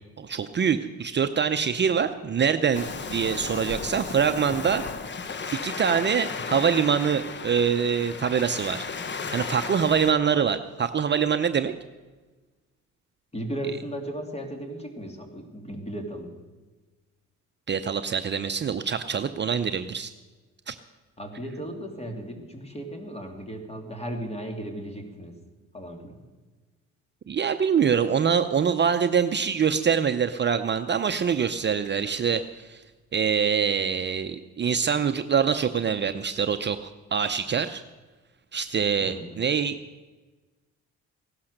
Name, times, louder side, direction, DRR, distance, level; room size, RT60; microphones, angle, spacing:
voice 1, 0.2-4.8 5.5-8.9 9.3-11.7 17.7-20.1 20.7-20.8 27.3-32.8 33.1-37.8 38.5-39.8, right 7 dB, 35° right, 8 dB, 0.7 m, -24 dB
Waves surf, 2.7-10.1, left 5 dB, 35° left, 1.0 m, -35 dB
voice 2, 13.3-16.3 21.2-25.4 25.7-26.2 39.0-39.3, right 1 dB, 20° left, 4 dB, 2.8 m, -36 dB
16.5 x 11.5 x 6.6 m, 1.3 s
cardioid pair, 90°, 30 cm